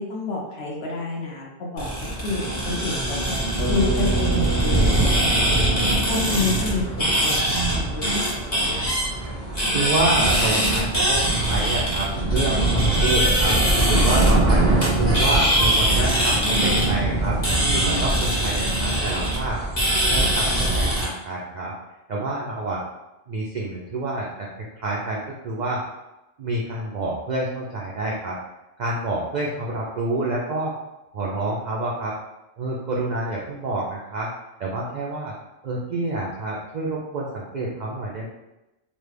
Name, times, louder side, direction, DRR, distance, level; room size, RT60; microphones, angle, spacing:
voice 1, 0.0-3.3 3.7-7.4 7.7-8.1 8.5-9.0, left 3 dB, 60° left, -2 dB, 0.9 m, -29 dB
sound 1, 1.8-21.0, right 1 dB, 35° left, 1.0 m, -21 dB
Bass guitar, 3.6-7.7, right 3 dB, 20° right, 0.8 m, -33 dB
voice 2, 9.7-13.6 13.9-17.4 17.7-19.7 20.0-21.7 22.1-22.8 23.3-24.5 24.8-25.8 26.4-28.4 28.8-30.7 31.1-32.1 32.6-34.3 34.6-35.3 35.6-38.3, right 2 dB, 65° right, -3 dB, 0.4 m, -28 dB
3.1 x 2.2 x 3.2 m, 0.96 s
omnidirectional pair, 1.3 m